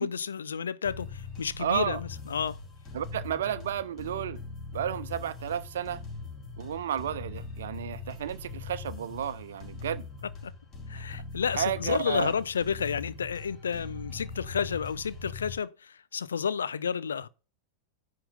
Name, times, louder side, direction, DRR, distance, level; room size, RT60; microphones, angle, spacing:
voice 1, 0.0-2.6 10.9-17.3, left 7 dB, 70° left, 0.6 m, -31 dB
sound 1, 0.8-15.6, left 4 dB, 30° left, 3.7 m, -41 dB
voice 2, 1.6-2.0 2.9-4.4 4.7-6.0 6.6-10.1 11.5-12.3, right 10 dB, 60° right, 0.9 m, -32 dB
10.0 x 3.8 x 6.8 m
figure-of-eight pair, 90°, 0 cm